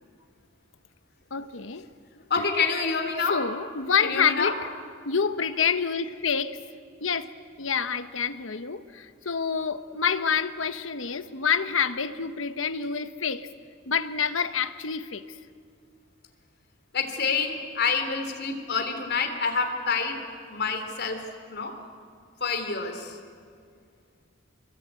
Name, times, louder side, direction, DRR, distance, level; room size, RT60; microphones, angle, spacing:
voice 1, 1.3-1.9 2.3-2.4 3.3-4.6 5.0-6.6 7.0-7.3 7.6-13.5 13.9-15.2, left 6 dB, 80° left, 1.2 m, -27 dB
voice 2, 2.3-3.4 4.0-4.5 16.9-20.2 20.5-21.7 22.4-23.2, left 5 dB, 55° left, 3.5 m, -27 dB
27.5 x 23.0 x 9.0 m
head